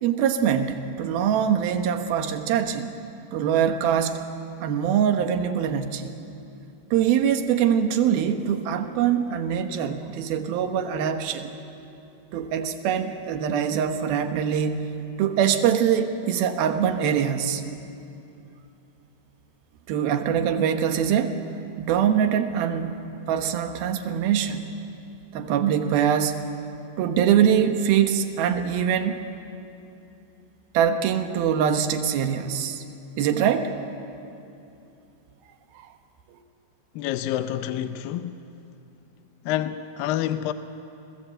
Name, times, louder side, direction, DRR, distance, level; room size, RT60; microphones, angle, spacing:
voice 1, 0.0-2.9 3.3-4.2 4.6-6.1 6.9-11.5 12.3-14.9 15.2-17.6 19.9-21.4 21.8-23.0 23.3-24.7 25.3-26.5 27.0-29.3 30.7-32.8 33.2-33.7 35.8-35.9, right 8 dB, 80° right, 3.0 m, -23 dB
voice 2, 37.0-38.4 39.4-40.5, left 12 dB, 75° left, 2.3 m, -28 dB
29.0 x 20.0 x 7.8 m
omnidirectional pair, 4.4 m